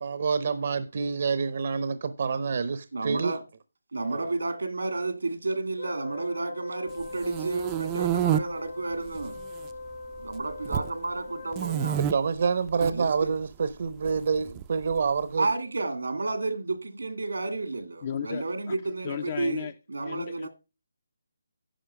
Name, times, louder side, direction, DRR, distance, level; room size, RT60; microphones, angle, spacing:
voice 1, 0.0-3.3 4.1-4.3 12.1-15.5, right 5 dB, 50° right, 0.7 m, -27 dB
voice 2, 2.9-3.4 3.9-9.4 10.2-12.0 12.8-13.3 15.4-20.5, right 3 dB, 90° right, 1.9 m, -31 dB
Wind instrument woodwind instrument, 5.8-12.1, left 3 dB, 65° left, 2.0 m, -41 dB
sound 1, 7.0-8.4 9.1-9.7 9.9-10.9 11.5-12.1 12.7-12.9 14.1-15.0, right 11 dB, 20° right, 0.4 m, -28 dB
voice 3, 18.0-18.8 19.0-19.8 20.0-20.5, left 8 dB, 35° left, 0.6 m, -35 dB
10.0 x 5.6 x 5.4 m
hypercardioid pair, 160°, 0 cm